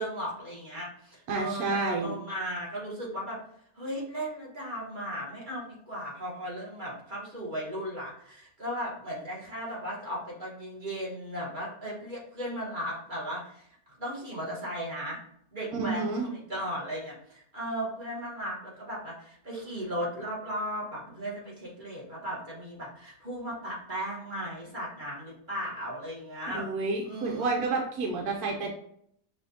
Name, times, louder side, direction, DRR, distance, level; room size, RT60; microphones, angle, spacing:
voice 1, 0.0-3.4 3.7-13.7 14.0-15.2 15.5-26.7 27.0-27.6, equal, 30° right, -5 dB, 1.4 m, -36 dB
voice 2, 1.3-2.1 15.7-16.3 26.5-28.7, right 3 dB, 75° right, 0 dB, 1.2 m, -29 dB
5.8 x 2.5 x 2.7 m, 0.68 s
omnidirectional pair, 1.7 m